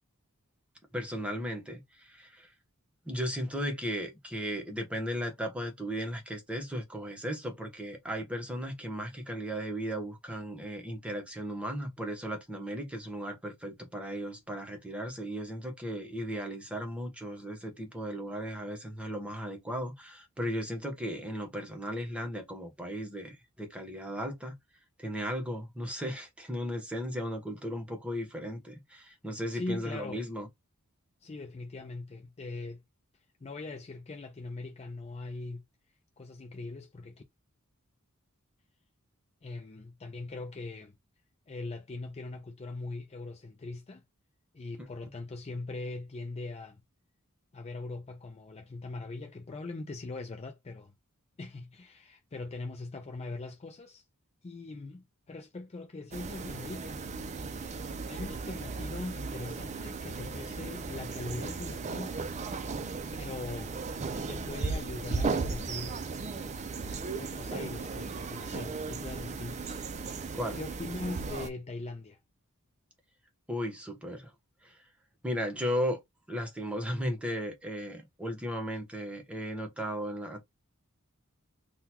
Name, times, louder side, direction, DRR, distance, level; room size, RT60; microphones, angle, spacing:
voice 1, 0.9-2.5 3.1-24.5 25.0-30.5 70.3-70.6 73.5-74.3 74.6-74.8 75.2-76.0 76.3-80.4, equal, 5° right, 1.0 m, -36 dB
voice 2, 29.5-30.2 31.2-32.8 33.4-35.6 36.2-37.2 39.4-41.0 41.5-44.0 44.5-46.8 47.5-50.9 51.4-54.0 54.4-57.0 58.0-62.2 63.2-63.8 64.3-66.0 67.2-69.8 70.5-72.2, left 3 dB, 30° left, 0.4 m, -41 dB
sound 1, 56.1-71.5, right 4 dB, 30° right, 0.4 m, -36 dB
3.8 x 2.2 x 2.9 m
head